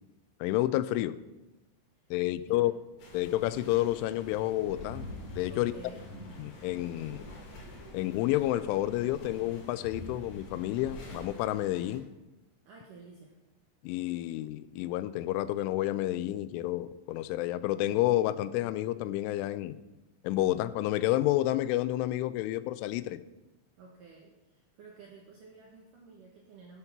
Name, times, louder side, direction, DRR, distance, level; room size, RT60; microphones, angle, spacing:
voice 1, 0.4-1.1 2.1-2.7 3.1-5.1 5.4-5.7 6.4-7.3 7.9-12.1 13.8-19.8 20.2-23.2, left 15 dB, 85° left, 15 dB, 3.0 m, -30 dB
sound 1, 3.0-12.0, left 1 dB, 60° left, 4.8 m, -46 dB
voice 2, 5.5-6.1 12.7-13.4 23.8-26.8, right 4 dB, 75° right, 0 dB, 1.9 m, -52 dB
12.0 x 7.3 x 5.9 m, 1.0 s
omnidirectional pair, 5.5 m